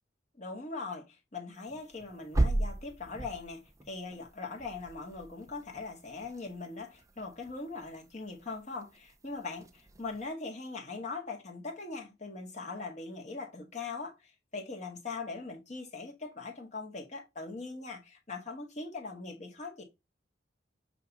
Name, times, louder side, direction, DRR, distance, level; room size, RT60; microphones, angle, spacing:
voice 1, 0.4-14.1 14.5-19.8, left 3 dB, 40° left, 1.7 m, -41 dB
sound 1, 1.7-10.3, right 2 dB, 15° right, 0.5 m, -37 dB
8.0 x 2.8 x 4.6 m
head